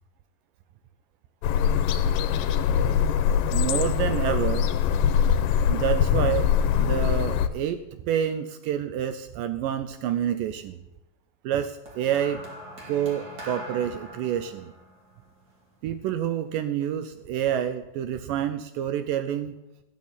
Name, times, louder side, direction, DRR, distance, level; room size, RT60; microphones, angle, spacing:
sound 1, 1.4-7.5, left 8 dB, 80° left, 2.2 m, -23 dB
voice 1, 3.5-4.7 5.7-6.5 6.8-10.8 11.4-12.4 12.9-14.7 15.8-19.6, right 10 dB, 75° right, 10 dB, 2.1 m, -28 dB
sound 2, 11.9-16.3 17.2-17.5, equal, 30° right, 2.6 m, -43 dB
14.5 x 6.5 x 8.7 m, 0.91 s
omnidirectional pair, 4.3 m